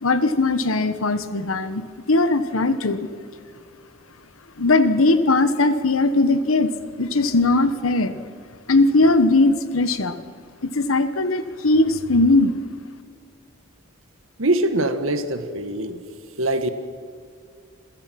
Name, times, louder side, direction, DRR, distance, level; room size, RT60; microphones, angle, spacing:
voice 1, 0.0-3.1 4.6-6.7 7.0-8.2 8.7-10.1 10.7-12.6, left 2 dB, 90° left, 11 dB, 1.3 m, -19 dB
voice 2, 14.4-16.0 16.4-16.7, right 1 dB, 75° right, 9 dB, 1.6 m, -23 dB
27.5 x 16.0 x 6.0 m, 2.2 s
head